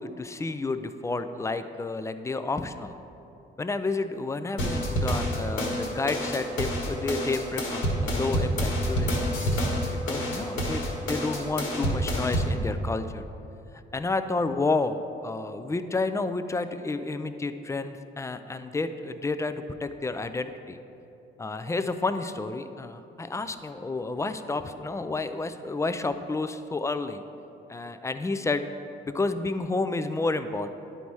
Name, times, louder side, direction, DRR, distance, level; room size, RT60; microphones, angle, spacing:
voice 1, 0.0-3.0 3.6-13.3 13.9-20.8 21.4-27.2 27.7-28.6 29.0-30.7, left 3 dB, 15° left, 10 dB, 0.3 m, -30 dB
sound 1, 4.6-12.6, equal, 85° left, 1.4 m, -28 dB
10.0 x 4.1 x 4.6 m, 2.8 s
cardioid pair, 90°, 20 cm